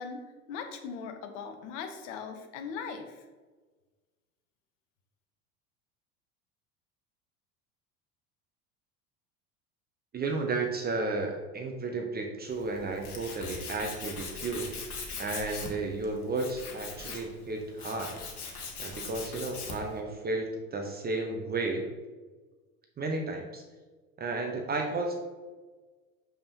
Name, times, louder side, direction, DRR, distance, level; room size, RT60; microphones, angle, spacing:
voice 1, 0.0-3.2, left 6 dB, 55° left, 6 dB, 1.0 m, -40 dB
voice 2, 10.1-14.7 15.2-18.1 18.8-21.9 23.0-23.6 24.2-25.1, right 3 dB, 20° right, 2 dB, 0.8 m, -33 dB
Tools, 12.5-20.0, left 4 dB, 75° left, 1.2 m, -41 dB
6.6 x 5.6 x 2.8 m, 1.3 s
figure-of-eight pair, 70°, 44 cm